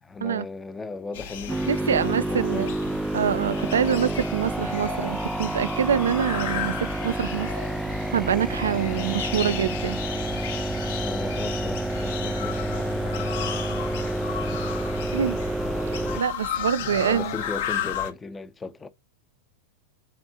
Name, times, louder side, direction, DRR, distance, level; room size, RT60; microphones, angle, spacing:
voice 1, 0.0-2.7 9.0-9.2 11.0-14.6 16.1-16.2 16.5-18.9, left 3 dB, 15° left, 0.7 m, -37 dB
sound 1, 1.1-18.1, left 9 dB, 55° left, 1.0 m, -34 dB
sound 2, 1.5-16.2, right 2 dB, 5° right, 0.3 m, -29 dB
voice 2, 1.7-2.7 3.1-7.5 8.1-10.0 15.1-15.4 15.9-17.3, right 8 dB, 65° right, 0.6 m, -25 dB
8.0 x 3.5 x 4.7 m
figure-of-eight pair, 90°, 0 cm